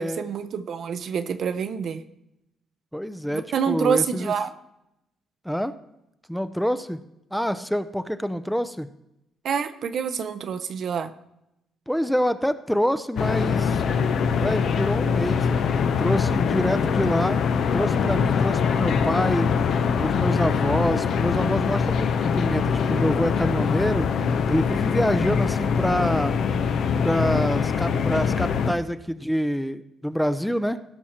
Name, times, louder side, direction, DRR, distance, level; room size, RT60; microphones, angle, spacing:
voice 1, 0.0-2.0 3.3-4.5 9.4-11.1, right 7 dB, 60° right, 11 dB, 0.7 m, -27 dB
voice 2, 2.9-4.3 5.4-5.7 6.3-7.0 7.3-8.9 11.9-13.8 14.3-17.4 17.7-19.5 20.0-24.1 24.5-26.3 27.0-30.8, equal, ahead, 11 dB, 0.5 m, -26 dB
sound 1, 13.2-28.7, left 6 dB, 70° left, 0.7 m, -23 dB
16.0 x 5.8 x 4.4 m, 0.86 s
cardioid pair, 90°, 0 cm